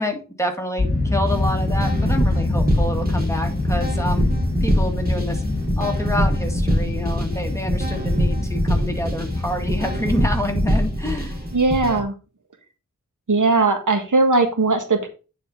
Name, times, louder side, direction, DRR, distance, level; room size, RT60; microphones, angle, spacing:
voice 1, 0.0-5.4 5.8-11.5, left 1 dB, 10° left, 3 dB, 1.8 m, -28 dB
sound 1, 0.8-10.8, left 2 dB, 30° left, 2.5 m, -26 dB
sound 2, 1.3-12.0, equal, 30° right, 2.6 m, -24 dB
voice 2, 11.5-12.1 13.3-15.1, right 3 dB, 80° right, 5 dB, 1.5 m, -19 dB
9.2 x 4.2 x 5.0 m, 0.34 s
wide cardioid pair, 65°, 31 cm